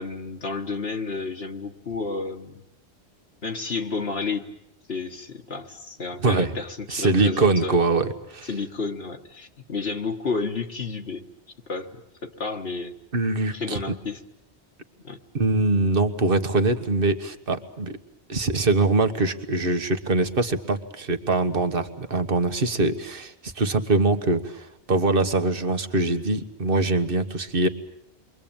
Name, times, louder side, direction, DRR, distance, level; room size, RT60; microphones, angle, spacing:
voice 1, 0.0-2.6 3.4-4.5 4.9-7.8 8.5-11.2 11.7-12.9 13.5-14.2 15.0-15.2, left 4 dB, 65° left, 3 dB, 1.8 m, -31 dB
voice 2, 6.9-8.5 13.1-14.0 15.3-17.9 18.3-27.7, right 3 dB, 55° right, 8 dB, 1.7 m, -23 dB
29.0 x 23.0 x 8.9 m, 0.78 s
omnidirectional pair, 1.1 m